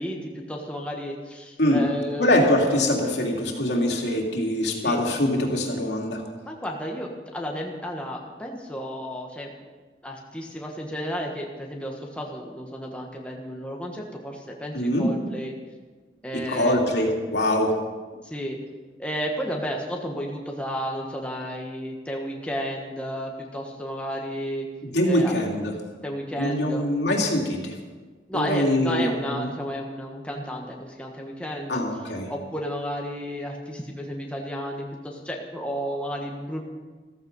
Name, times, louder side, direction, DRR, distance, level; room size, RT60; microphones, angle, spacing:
voice 1, 0.0-2.4 4.8-5.0 6.4-9.5 10.0-15.5 16.2-16.8 18.2-18.6 19.0-24.7 25.1-25.3 26.0-26.8 28.3-31.8 32.3-36.6, equal, 5° left, 0 dB, 1.4 m, -32 dB
voice 2, 2.2-6.2 14.7-15.1 16.3-17.7 24.8-25.7 26.4-27.8 28.3-29.5 31.7-32.3, left 1 dB, 70° left, 0 dB, 2.9 m, -23 dB
14.5 x 14.5 x 5.4 m, 1.4 s
head